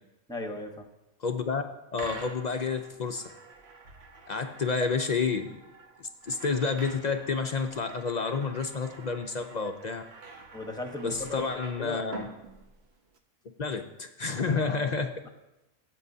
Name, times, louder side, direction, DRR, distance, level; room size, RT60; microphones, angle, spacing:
voice 1, 0.3-0.9 10.5-11.4 11.8-12.2 14.6-15.0, left 2 dB, 5° left, 3 dB, 0.9 m, -37 dB
voice 2, 1.2-1.6 1.9-3.2 4.3-5.6 6.0-10.0 11.0-12.3 13.6-15.1, left 4 dB, 50° left, 6 dB, 0.5 m, -30 dB
sound 1, 1.9-13.2, right 4 dB, 60° right, 1.1 m, -48 dB
17.5 x 8.2 x 2.7 m, 0.97 s
omnidirectional pair, 1.3 m